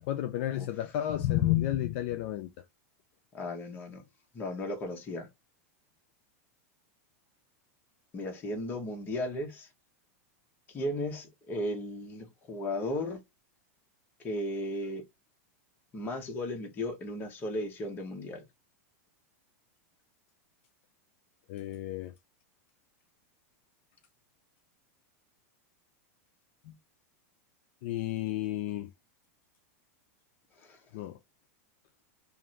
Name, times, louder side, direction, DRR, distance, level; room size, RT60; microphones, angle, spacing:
voice 1, 0.0-2.5 21.5-22.1 26.6-26.7 27.8-28.9 30.9-31.2, left 13 dB, 50° left, 0.4 m, -31 dB
voice 2, 3.3-4.0 4.3-5.3 8.1-9.7 10.7-13.2 14.2-15.0 15.9-18.4 30.6-30.8, left 1 dB, 20° left, 0.8 m, -35 dB
2.5 x 2.5 x 3.0 m
supercardioid pair, 155°, 8 cm